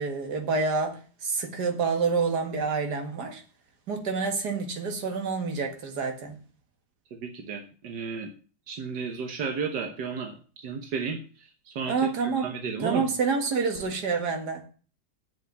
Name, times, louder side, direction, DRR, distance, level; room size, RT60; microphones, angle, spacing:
voice 1, 0.0-3.4 3.9-6.4 11.9-12.5 12.8-14.6, right 4 dB, 70° right, 2.4 m, -28 dB
voice 2, 7.1-8.3 8.7-13.1, right 5 dB, 90° right, 1.8 m, -34 dB
7.8 x 7.4 x 7.2 m
omnidirectional pair, 1.8 m